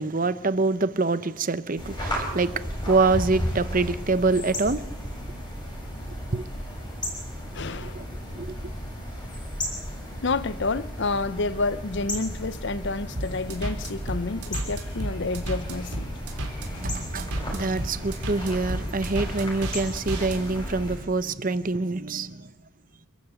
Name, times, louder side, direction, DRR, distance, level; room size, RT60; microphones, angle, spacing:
voice 1, 0.0-2.5 2.9-4.8 6.3-6.4 7.8-8.0 8.3-8.5 16.7-22.5, right 3 dB, 35° right, 0.7 m, -25 dB
sound 1, 1.8-21.0, equal, 20° left, 6.1 m, -34 dB
voice 2, 7.5-8.0 10.2-16.1, left 3 dB, 50° left, 0.6 m, -29 dB
sound 2, 13.2-20.4, right 1 dB, 85° right, 3.8 m, -33 dB
27.5 x 12.5 x 8.2 m
head